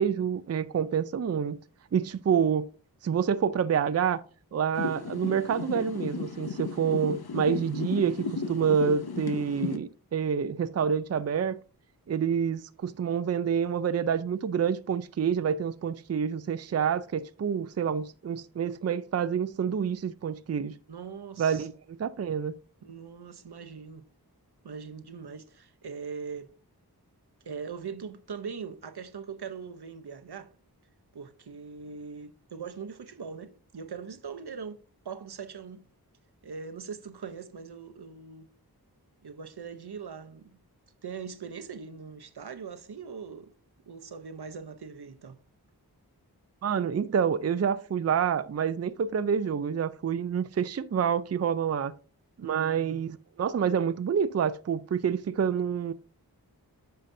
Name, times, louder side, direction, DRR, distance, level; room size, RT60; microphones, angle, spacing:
voice 1, 0.0-1.6 1.9-2.7 3.0-4.2 4.5-11.6 12.1-20.7 21.4-22.5 46.6-51.9 52.4-55.9, right 7 dB, 45° right, 0.4 m, -28 dB
sound 1, 4.8-9.8, left 4 dB, 75° left, 0.7 m, -34 dB
voice 2, 20.9-21.7 22.8-24.0 24.6-26.5 27.4-30.5 31.1-34.8 35.0-35.8 36.4-38.5 39.2-40.6 41.0-43.5 43.9-45.4 52.4-53.0, right 6 dB, 85° right, 0.7 m, -41 dB
9.0 x 5.6 x 2.6 m
wide cardioid pair, 50°, 38 cm